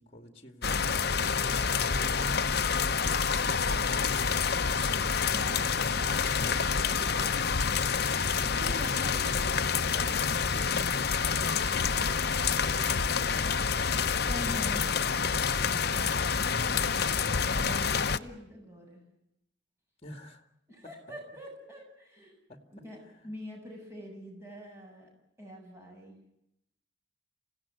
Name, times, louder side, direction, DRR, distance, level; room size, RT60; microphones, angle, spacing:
voice 1, 0.0-3.2 9.8-13.8 20.0-20.4 20.8-20.9 22.5-22.6 23.0-23.3, left 1 dB, 30° left, 6 dB, 2.3 m, -50 dB
sound 1, 0.6-18.2, left 6 dB, 50° left, 0.8 m, -28 dB
voice 2, 5.3-7.5 8.4-9.6 14.2-14.9 15.9-17.1 17.5-19.0 20.7-22.4 22.7-25.1 25.4-26.2, equal, 15° right, 0 dB, 7.7 m, -44 dB
27.5 x 17.0 x 9.3 m, 0.82 s
head